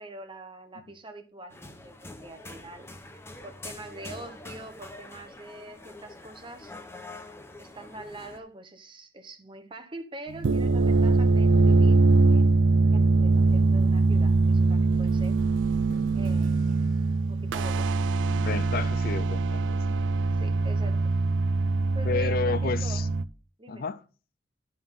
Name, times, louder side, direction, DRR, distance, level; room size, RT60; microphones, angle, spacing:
voice 1, 0.0-2.9 3.4-6.7 7.6-12.0 12.3-12.6 12.9-15.4 16.1-16.8 17.3-17.9 20.3-21.0 21.5-21.6 21.9-23.0 23.6-23.8, right 1 dB, 30° right, 1.1 m, -44 dB
sound 1, 1.5-8.4, left 2 dB, 15° left, 0.9 m, -45 dB
sound 2, 10.3-23.2, right 3 dB, 80° right, 0.4 m, -22 dB
Drum, 15.9-17.8, equal, 70° left, 2.2 m, -52 dB
voice 2, 18.3-20.0 22.0-23.1 23.7-24.0, left 4 dB, 55° left, 0.4 m, -31 dB
11.0 x 5.7 x 3.7 m
head